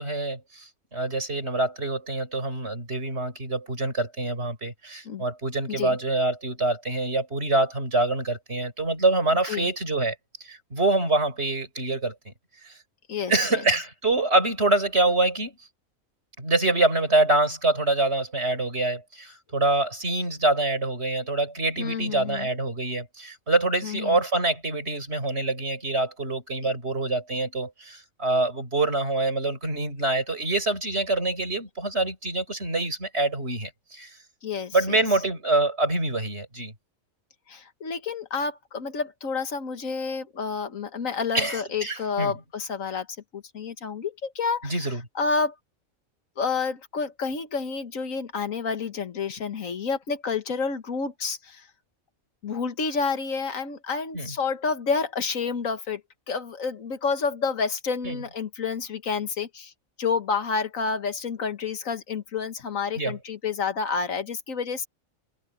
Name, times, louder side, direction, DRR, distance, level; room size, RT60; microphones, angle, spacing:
voice 1, 0.0-10.2 10.5-12.3 12.6-12.8 13.3-15.5 16.4-34.1 34.7-36.7 41.3-42.3 44.6-45.0 54.1-54.3 58.0-58.2 63.0-63.2, right 2 dB, 50° right, 5.8 m, -25 dB
voice 2, 13.1-13.6 21.8-22.5 23.8-24.2 34.4-35.0 37.5-43.1 43.3-45.5 46.4-51.6 52.4-56.0 56.3-59.7 60.0-64.9, left 5 dB, 75° left, 1.8 m, -29 dB
omnidirectional pair, 1.4 m